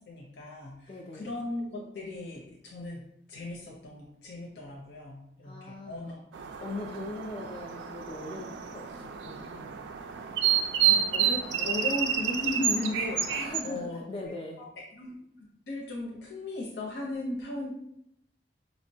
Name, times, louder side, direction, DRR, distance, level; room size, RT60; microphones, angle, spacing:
voice 1, 0.1-0.8 1.1-3.0 3.3-6.2 10.8-14.3 15.0-15.2 15.7-17.7, left 2 dB, 80° left, -4 dB, 0.7 m, -36 dB
voice 2, 0.9-1.4 5.4-6.1 6.6-9.9 11.5-11.7 13.3-14.6, left 2 dB, 30° left, -1 dB, 0.3 m, -41 dB
sound 1, 6.3-13.6, right 8 dB, 90° right, 0.3 m, -29 dB
4.9 x 2.1 x 2.7 m, 0.74 s
head